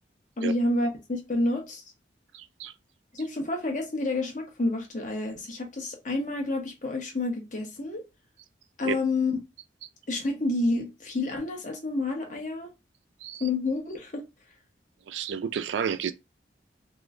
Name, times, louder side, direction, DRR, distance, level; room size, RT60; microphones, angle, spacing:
voice 1, 0.4-1.8 3.1-8.0 8.8-9.4 10.1-12.7 13.4-14.2, left 2 dB, 45° left, 1.0 m, -29 dB
voice 2, 2.3-2.7 8.8-9.0 13.2-13.4 15.1-16.1, right 7 dB, 85° right, 0.4 m, -31 dB
3.1 x 3.0 x 2.4 m
head